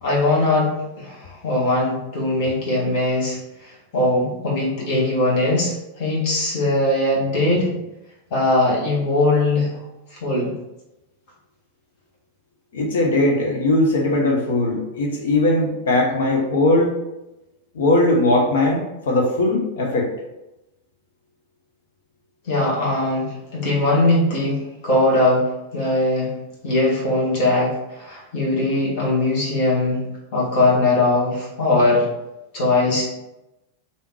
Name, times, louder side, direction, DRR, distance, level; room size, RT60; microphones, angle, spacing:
voice 1, 0.0-7.8 8.3-9.8 10.1-10.5 22.5-26.3 26.6-30.0 30.3-32.1 32.5-33.0, left 2 dB, 45° left, -4 dB, 1.6 m, -20 dB
voice 2, 12.7-16.9 17.7-20.1, left 2 dB, 60° left, 0 dB, 0.8 m, -19 dB
3.5 x 2.8 x 4.6 m, 0.94 s
figure-of-eight pair, 90°, 0 cm